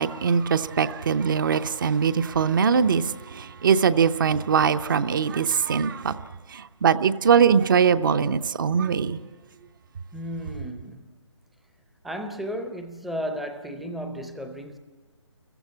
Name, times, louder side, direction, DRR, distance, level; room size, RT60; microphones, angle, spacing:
voice 1, 0.0-3.0 3.4-6.1 6.8-9.2, right 6 dB, 40° right, 0.7 m, -21 dB
voice 2, 2.2-2.6 9.0-9.5 10.1-11.1 12.0-14.8, equal, ahead, 0.6 m, -35 dB
29.5 x 15.0 x 8.4 m
figure-of-eight pair, 155°, 16 cm